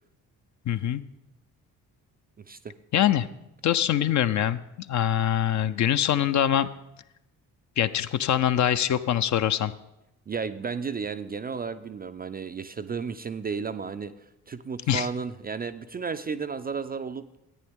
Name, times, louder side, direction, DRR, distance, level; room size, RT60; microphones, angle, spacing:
voice 1, 0.7-1.0 2.9-3.3 3.6-4.6 4.9-6.7 7.8-9.7 14.9-15.1, left 10 dB, 40° left, 12 dB, 0.5 m, -23 dB
voice 2, 10.3-14.1 14.5-17.4, right 5 dB, 20° right, 10 dB, 0.4 m, -33 dB
14.0 x 9.2 x 3.6 m, 0.89 s
hypercardioid pair, 45°, 44 cm